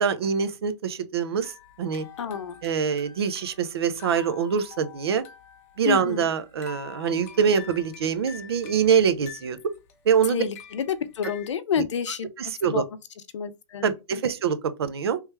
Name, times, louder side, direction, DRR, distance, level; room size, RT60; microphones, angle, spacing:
voice 1, 0.0-2.1 2.6-5.2 5.8-9.6 10.0-10.4 11.8-11.9 12.4-12.8 13.8-15.2, right 7 dB, 55° right, 0.6 m, -24 dB
sound 1, 1.4-11.5, left 10 dB, 30° left, 0.7 m, -46 dB
voice 2, 2.2-2.6 5.9-6.3 10.3-12.3 12.6-12.8 13.3-14.2, left 7 dB, 70° left, 0.6 m, -29 dB
3.2 x 3.1 x 3.3 m
hypercardioid pair, 170°, 16 cm